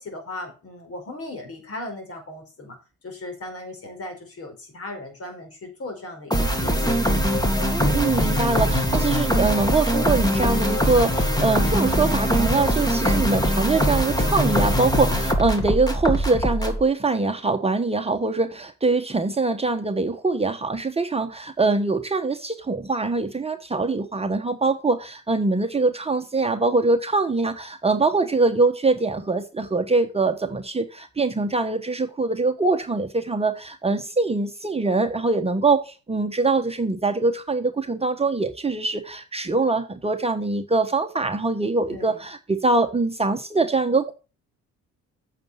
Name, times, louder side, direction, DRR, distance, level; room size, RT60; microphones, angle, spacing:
voice 1, 0.0-2.8 3.0-7.0 41.9-42.2, left 2 dB, 50° left, 4.8 m, -37 dB
sound 1, 6.3-16.8, equal, 15° left, 2.2 m, -22 dB
voice 2, 7.7-44.1, right 3 dB, 20° right, 1.2 m, -23 dB
8.9 x 6.9 x 5.8 m
cardioid pair, 90°, 30 cm